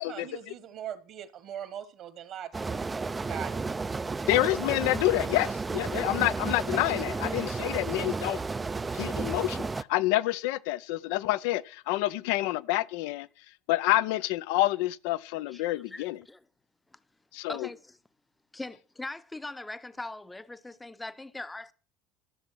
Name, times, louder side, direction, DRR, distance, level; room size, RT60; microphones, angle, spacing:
voice 1, 0.0-2.8 3.2-3.6, right 10 dB, 55° right, 1.4 m, -40 dB
sound 1, 2.5-9.8, right 4 dB, 20° right, 0.5 m, -32 dB
voice 2, 4.3-8.4 8.9-13.3 13.7-16.2 17.3-17.7, left 17 dB, 70° left, 0.6 m, -28 dB
voice 3, 15.5-16.4 17.5-18.0 18.5-21.7, left 2 dB, 10° left, 0.8 m, -41 dB
13.5 x 7.1 x 6.2 m
hypercardioid pair, 70°, 0 cm